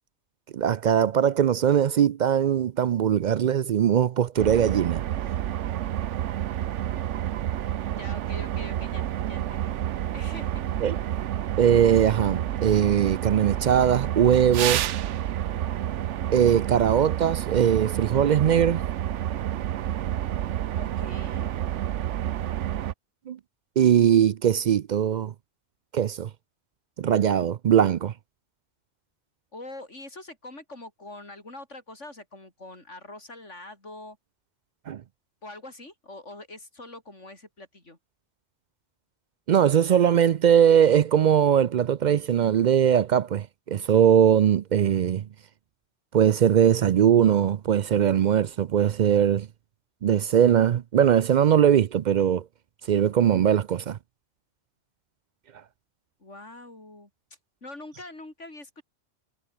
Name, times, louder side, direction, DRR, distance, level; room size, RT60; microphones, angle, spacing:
voice 1, 0.5-5.0 10.8-11.0 11.6-14.8 16.3-18.8 23.3-23.4 23.8-25.3 25.9-26.3 27.0-28.1 34.9-35.0 39.5-45.3 46.1-49.5 50.0-52.4 52.9-54.0, right 9 dB, 60° right, 0.5 m, -21 dB
sound 1, 4.4-22.9, right 11 dB, 80° right, 1.0 m, -29 dB
voice 2, 7.9-9.7 10.1-10.6 20.8-21.5 29.5-34.2 35.4-38.0 56.2-57.1 57.6-58.8, left 2 dB, 85° left, 5.9 m, -44 dB
omnidirectional pair, 1.2 m